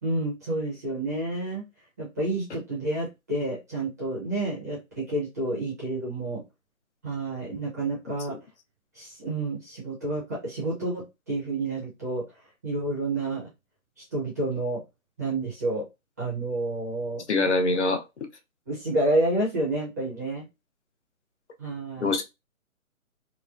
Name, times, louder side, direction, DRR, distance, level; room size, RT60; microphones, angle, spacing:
voice 1, 0.0-1.6 2.0-6.4 7.0-8.3 8.9-12.2 12.6-13.5 14.1-14.8 15.2-15.8 16.2-17.2 18.7-20.4 21.6-22.1, right 2 dB, 15° right, 0.5 m, -29 dB
voice 2, 17.3-18.0 22.0-22.2, left 2 dB, 55° left, 0.7 m, -23 dB
3.0 x 2.0 x 2.4 m
figure-of-eight pair, 145°, 42 cm